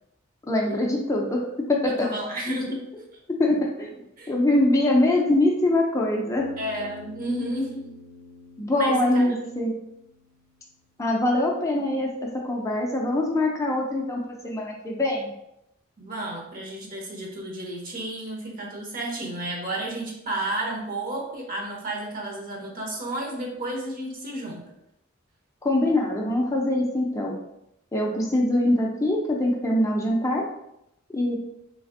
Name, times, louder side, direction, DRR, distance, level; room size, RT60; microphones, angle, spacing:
voice 1, 0.5-2.1 3.4-4.0 4.3-6.4 8.6-9.7 11.0-12.1 12.4-15.3 25.6-27.4 27.9-30.4 31.1-31.4, left 1 dB, 15° left, -1 dB, 0.4 m, -23 dB
voice 2, 1.9-2.9 4.2-4.3 6.6-7.9 8.7-9.5 16.0-24.6, right 1 dB, 45° right, -1 dB, 0.8 m, -32 dB
Bass guitar, 6.4-10.7, left 2 dB, 80° right, 0.8 m, -46 dB
3.3 x 3.2 x 2.5 m, 0.81 s
head